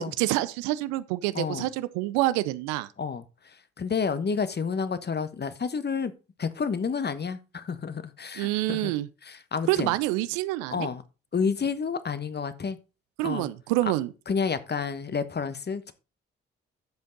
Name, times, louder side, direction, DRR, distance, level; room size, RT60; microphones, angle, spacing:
voice 1, 0.0-2.9 8.4-9.1 9.7-10.9 13.2-14.1, right 17 dB, 70° right, 0.7 m, -27 dB
voice 2, 1.3-1.7 3.0-6.1 6.4-8.9 9.2-9.9 10.7-11.0 11.3-12.8 13.2-13.5 14.3-15.9, left 5 dB, 35° left, 1.2 m, -30 dB
10.5 x 7.6 x 4.0 m
figure-of-eight pair, 40°, 30 cm